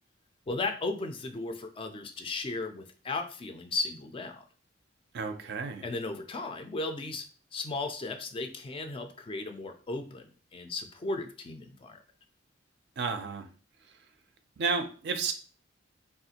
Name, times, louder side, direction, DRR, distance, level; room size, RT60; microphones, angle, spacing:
voice 1, 0.5-4.4 5.8-7.3 7.5-12.0, left 3 dB, 30° left, 6 dB, 0.3 m, -35 dB
voice 2, 5.1-5.8 13.0-13.5 13.9-14.0 14.6-15.3, right 5 dB, 60° right, 8 dB, 0.4 m, -32 dB
3.4 x 2.4 x 2.8 m, 0.39 s
head